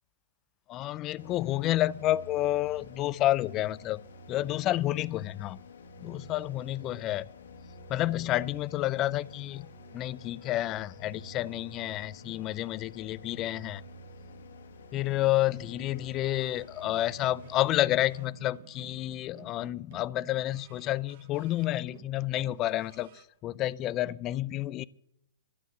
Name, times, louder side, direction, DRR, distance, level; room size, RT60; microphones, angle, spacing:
voice 1, 0.7-4.0 4.3-5.6 6.0-7.3 7.9-13.8 14.9-24.8, left 15 dB, 30° left, 0.4 m, -30 dB
sound 1, 1.2-18.3, equal, 85° left, 1.8 m, -49 dB
sound 2, 15.0-23.2, right 7 dB, 50° right, 1.4 m, -55 dB
12.0 x 7.8 x 9.9 m
hypercardioid pair, 145°, 0 cm